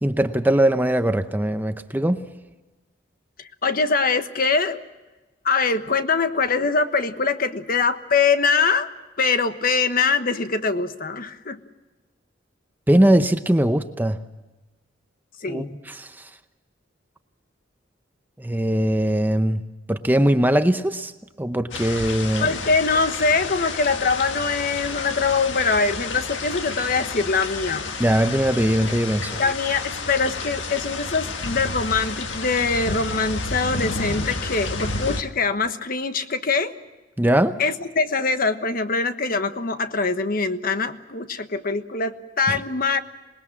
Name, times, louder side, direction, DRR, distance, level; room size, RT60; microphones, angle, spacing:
voice 1, 0.0-2.2 12.9-14.2 15.5-16.3 18.4-19.6 19.9-21.1 21.4-22.5 28.0-29.4 37.2-37.6 42.5-42.6, right 1 dB, 10° right, 9 dB, 0.8 m, -21 dB
voice 2, 3.4-4.8 5.4-8.9 9.2-11.6 15.4-15.7 22.4-27.9 29.4-36.7 37.6-43.0, left 4 dB, 50° left, 9 dB, 1.2 m, -23 dB
sound 1, 21.7-35.2, left 3 dB, 75° left, 1.7 m, -31 dB
26.5 x 20.0 x 7.3 m, 1.1 s
head